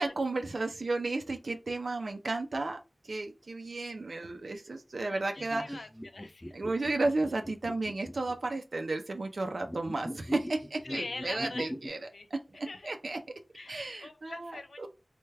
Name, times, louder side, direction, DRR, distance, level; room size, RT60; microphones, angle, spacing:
voice 1, 0.0-2.8 3.0-5.8 6.5-12.0 12.3-13.2 13.7-14.9, right 2 dB, 75° right, 0.4 m, -33 dB
voice 2, 5.0-6.6 10.8-12.3 12.6-12.9 13.5-14.9, left 3 dB, 85° left, 0.4 m, -44 dB
sound 1, 5.4-8.4 9.6-11.9, equal, 10° left, 0.3 m, -40 dB
3.3 x 2.2 x 3.3 m
wide cardioid pair, 70°, 0 cm